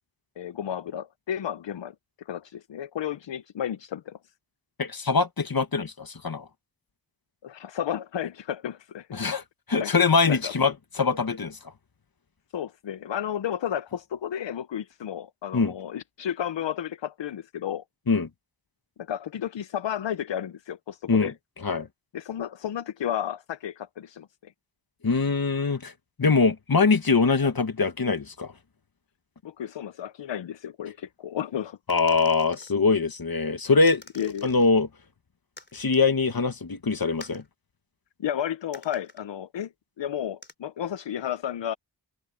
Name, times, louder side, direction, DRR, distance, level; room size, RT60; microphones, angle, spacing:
voice 1, 0.4-1.9 2.3-4.2 7.4-9.1 9.8-9.9 10.3-10.5 12.5-17.8 19.0-21.3 22.1-24.5 29.4-31.8 34.2-34.6 38.2-39.7 40.0-41.7, left 10 dB, 75° left, 0.7 m, -32 dB
voice 2, 4.8-6.5 9.1-9.4 9.7-11.6 15.5-15.7 18.1-18.3 21.1-21.3 21.6-21.9 25.0-25.9 26.2-28.5 31.9-34.0 34.4-34.9 35.7-37.4, left 4 dB, 55° left, 1.8 m, -23 dB
sound 1, 31.9-32.7 33.9-34.7 35.6-36.1 37.2-37.5 38.7-39.2 40.4-40.5, left 2 dB, 25° left, 3.3 m, -48 dB
wide cardioid pair, 65°, 44 cm